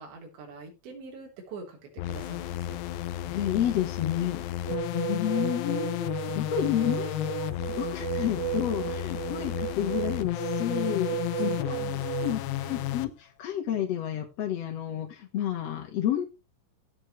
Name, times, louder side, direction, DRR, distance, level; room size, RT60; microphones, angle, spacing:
voice 1, 0.0-2.8 6.9-7.3 11.4-13.0, right 3 dB, 85° right, 0 dB, 5.9 m, -45 dB
sound 1, 2.0-13.1, left 14 dB, 85° left, 2.8 m, -33 dB
voice 2, 3.3-4.4 4.9-11.7 12.2-12.4 12.7-13.1 13.4-16.2, left 10 dB, 65° left, 3 dB, 1.7 m, -30 dB
sound 2, 4.7-12.3, right 19 dB, 50° right, 6.1 m, -35 dB
16.5 x 6.5 x 3.1 m, 0.26 s
omnidirectional pair, 5.0 m